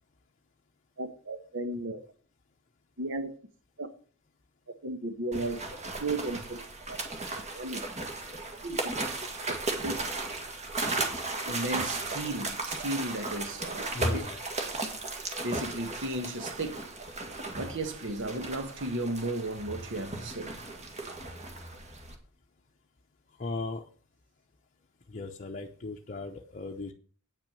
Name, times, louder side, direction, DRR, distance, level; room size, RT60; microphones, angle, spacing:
voice 1, 1.0-2.0 3.0-3.3 3.8-3.9 4.8-5.6 6.0-6.6 6.9-7.0 7.5-7.8 8.6-8.8 9.5-9.6 9.8-10.0 11.5-14.2 15.4-16.9 17.6-20.5, right 2 dB, 60° right, 1.3 m, -34 dB
sound 1, 5.3-22.2, right 2 dB, 35° right, 1.9 m, -35 dB
voice 2, 13.9-14.4 23.4-23.9 25.1-26.9, left 3 dB, 35° left, 0.7 m, -37 dB
9.1 x 6.1 x 6.8 m
head